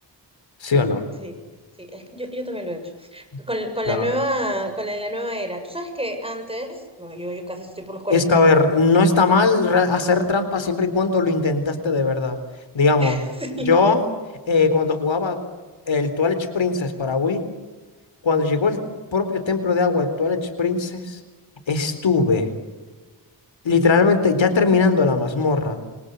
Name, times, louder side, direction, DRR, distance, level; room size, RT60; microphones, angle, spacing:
voice 1, 0.6-1.0 3.9-4.1 8.1-12.4 12.7-13.2 13.7-14.0 14.5-15.4 15.9-17.4 18.2-18.8 19.1-21.2 21.7-22.5 23.6-25.8, left 4 dB, 85° left, 9 dB, 4.1 m, -19 dB
voice 2, 1.8-8.4 13.0-13.9, equal, 10° right, 6 dB, 7.0 m, -29 dB
28.5 x 25.0 x 8.1 m, 1.3 s
wide cardioid pair, 85°, 45 cm